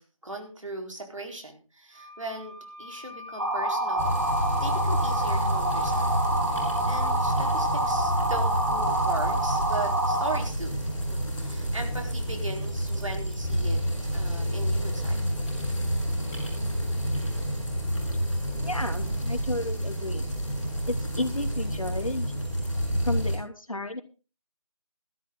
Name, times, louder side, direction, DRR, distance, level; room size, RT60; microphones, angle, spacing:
voice 1, 0.0-4.1 4.6-6.2 6.5-10.8 11.1-13.8 14.1-15.2, right 2 dB, 65° right, 3 dB, 4.3 m, -38 dB
Wind instrument woodwind instrument, 1.9-6.2, right 3 dB, 25° right, 4.1 m, -44 dB
sound 1, 3.4-10.4, right 1 dB, 40° right, 3.3 m, -27 dB
sound 2, 4.0-23.4, equal, ahead, 4.0 m, -29 dB
voice 2, 18.6-20.2 20.9-22.3 23.0-24.0, left 2 dB, 75° left, 5 dB, 2.8 m, -32 dB
14.0 x 13.5 x 3.9 m, 0.34 s
figure-of-eight pair, 175°, 18 cm